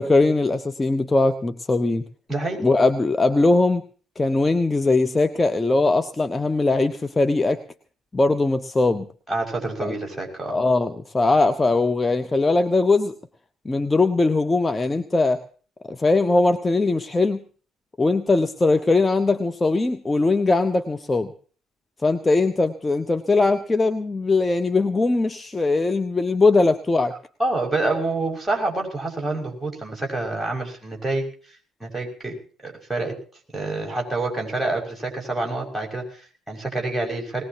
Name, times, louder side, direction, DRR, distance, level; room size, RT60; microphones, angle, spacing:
voice 1, 0.0-2.0 2.6-3.8 4.2-7.6 8.1-9.1 9.8-9.9 10.5-13.1 13.6-15.4 15.9-17.4 18.0-21.3 22.0-27.2, left 3 dB, 20° left, 8 dB, 1.1 m, -20 dB
voice 2, 2.3-2.6 9.3-10.6 27.4-31.2 31.8-32.4 32.6-33.1 33.5-37.4, right 2 dB, 10° right, 0 dB, 6.5 m, -27 dB
20.5 x 19.0 x 3.0 m, 0.42 s
figure-of-eight pair, 50°, 0 cm